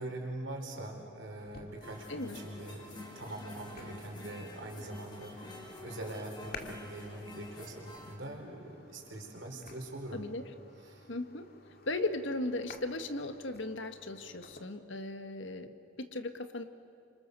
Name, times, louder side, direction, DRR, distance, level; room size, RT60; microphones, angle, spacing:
voice 1, 0.0-10.2 10.8-11.0, right 1 dB, 65° right, 2 dB, 4.7 m, -43 dB
sound 1, 1.4-14.6, left 3 dB, 50° left, 2.2 m, -54 dB
sound 2, 1.8-8.2, left 1 dB, 25° left, 3.9 m, -49 dB
voice 2, 10.1-10.4 11.1-11.5 11.9-16.6, left 2 dB, 70° left, 8 dB, 1.5 m, -37 dB
30.0 x 26.5 x 6.9 m, 2.7 s
head